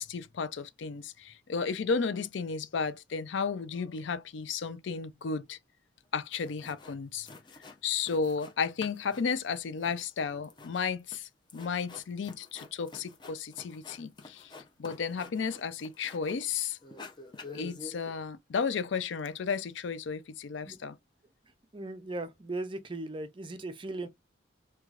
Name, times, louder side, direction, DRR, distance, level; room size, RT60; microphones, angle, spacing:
voice 1, 0.0-5.6 6.1-7.3 7.8-14.5 14.8-16.8 17.5-21.0, left 5 dB, 80° left, 0.4 m, -33 dB
sound 1, 6.0-6.1 6.3-7.0 7.2-8.5 8.8-16.5 16.8-18.1, left 3 dB, 25° left, 0.6 m, -49 dB
voice 2, 21.7-24.1, right 2 dB, 25° right, 0.4 m, -37 dB
4.6 x 2.3 x 2.4 m
head